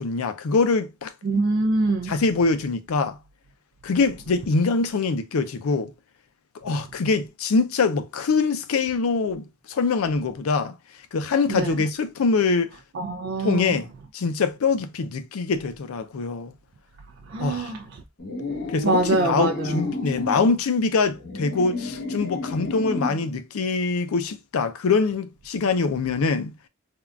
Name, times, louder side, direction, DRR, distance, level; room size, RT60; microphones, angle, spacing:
voice 1, 0.0-1.1 2.0-3.2 3.8-5.9 6.6-10.8 11.1-12.7 13.4-16.5 17.4-17.7 18.7-26.5, left 4 dB, 85° left, 0.5 m, -24 dB
voice 2, 1.2-2.1 11.5-11.8 12.9-13.8 17.3-17.8 18.8-19.9, right 3 dB, 55° right, 0.4 m, -24 dB
sound 1, 18.2-20.5 21.1-23.3, left 3 dB, 45° left, 1.0 m, -31 dB
3.5 x 2.3 x 2.3 m
head